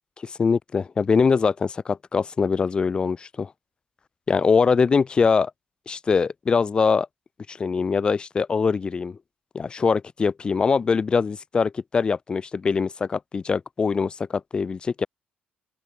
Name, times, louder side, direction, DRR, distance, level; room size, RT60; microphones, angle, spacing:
voice 1, 0.2-3.5 4.3-5.5 5.9-7.1 7.5-9.2 9.5-15.1, left 5 dB, 30° left, 2.8 m, -23 dB
open air
cardioid pair, 130°, 3 cm